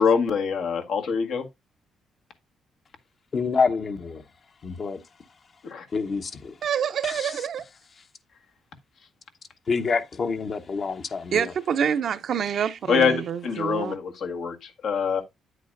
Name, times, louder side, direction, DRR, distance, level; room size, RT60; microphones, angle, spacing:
voice 1, 0.0-1.4 5.6-5.9 12.9-15.2, left 6 dB, 70° left, 1.6 m, -24 dB
voice 2, 3.3-4.2 4.6-5.0 5.9-6.5 7.0-7.3 9.7-11.5, left 5 dB, 45° left, 1.1 m, -27 dB
voice 3, 6.6-7.6 11.3-13.9, right 8 dB, 60° right, 0.7 m, -26 dB
9.1 x 8.1 x 2.6 m
cardioid pair, 90°, 0 cm